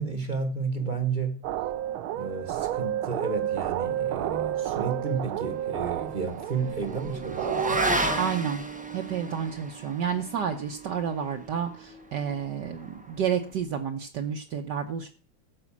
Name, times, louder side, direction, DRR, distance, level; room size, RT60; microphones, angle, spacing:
voice 1, 0.0-1.4 2.1-7.9, right 5 dB, 25° right, 1.2 m, -32 dB
sound 1, 1.4-8.2, right 12 dB, 85° right, 1.5 m, -30 dB
Motorcycle / Accelerating revving vroom, 4.9-13.6, right 1 dB, 5° right, 0.6 m, -35 dB
voice 2, 8.2-8.6 8.9-15.1, right 7 dB, 60° right, 1.4 m, -30 dB
14.0 x 5.5 x 7.3 m
omnidirectional pair, 2.2 m